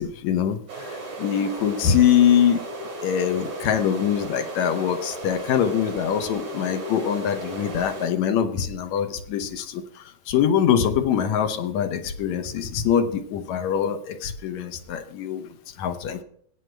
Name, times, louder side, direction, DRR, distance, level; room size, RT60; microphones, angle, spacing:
voice 1, 0.0-2.6 3.0-15.5 15.8-16.2, left 8 dB, 75° left, 9 dB, 2.2 m, -23 dB
sound 1, 0.7-8.1, right 2 dB, 90° right, 4.7 m, -35 dB
15.5 x 9.0 x 3.3 m, 0.63 s
omnidirectional pair, 3.3 m